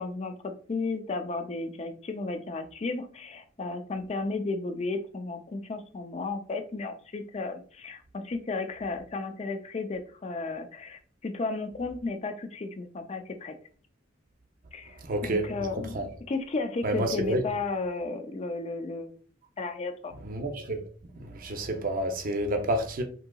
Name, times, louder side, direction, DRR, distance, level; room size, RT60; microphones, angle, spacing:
voice 1, 0.0-13.5 14.7-15.0 15.2-16.0 16.3-19.2 19.6-20.1, left 3 dB, 35° left, 0.4 m, -34 dB
voice 2, 15.0-15.5 15.8-16.1 16.8-17.4 20.2-20.8 21.2-23.0, right 1 dB, 45° right, 0.6 m, -29 dB
3.7 x 2.8 x 2.2 m
head